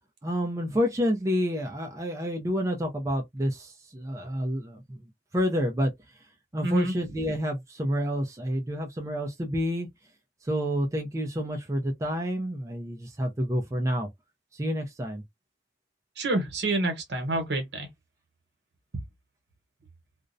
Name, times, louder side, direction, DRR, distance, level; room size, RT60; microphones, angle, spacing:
voice 1, 0.2-5.0 5.3-5.9 6.5-9.9 10.4-14.1 14.5-15.2, equal, 15° right, 0.4 m, -29 dB
voice 2, 6.6-6.9 16.2-17.9, right 2 dB, 65° right, 0.9 m, -27 dB
2.4 x 2.0 x 2.5 m
head